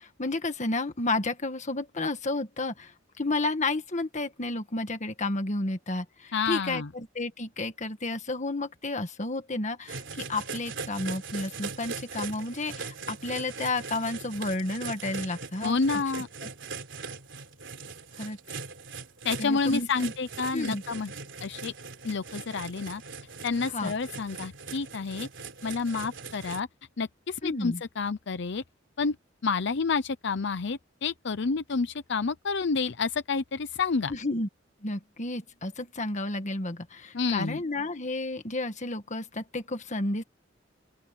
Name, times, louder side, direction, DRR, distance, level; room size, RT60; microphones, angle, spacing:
voice 1, 0.0-15.8 18.2-18.4 19.4-20.1 20.5-20.8 23.7-23.9 27.4-27.8 34.1-34.5 34.8-40.2, left 2 dB, 40° left, 1.6 m, -31 dB
voice 2, 6.3-6.9 15.6-16.3 19.2-21.1 21.4-21.7 22.0-23.0 23.4-25.3 25.6-26.7 27.0-28.6 29.0-29.2 29.4-34.1 37.1-37.6, left 4 dB, 65° left, 0.7 m, -29 dB
sound 1, 9.9-26.6, right 4 dB, 70° right, 3.8 m, -40 dB
open air
head